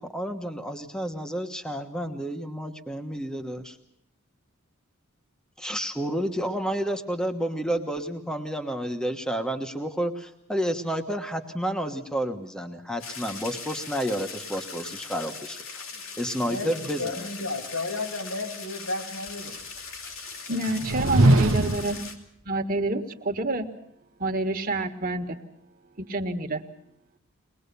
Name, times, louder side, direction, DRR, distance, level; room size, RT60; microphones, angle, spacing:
voice 1, 0.0-3.8 5.6-15.9 16.2-17.3, equal, 5° left, 5 dB, 1.2 m, -30 dB
sound 1, 13.0-22.2, left 4 dB, 70° left, 3.1 m, -40 dB
voice 2, 16.4-19.5, left 2 dB, 85° left, 3 dB, 5.2 m, -33 dB
voice 3, 20.5-22.0 22.4-23.7 24.2-25.4 26.0-26.6, right 2 dB, 40° right, 4 dB, 1.7 m, -28 dB
sound 2, 20.7-22.0, right 2 dB, 65° right, 1.1 m, -21 dB
23.0 x 20.5 x 6.9 m, 0.75 s
head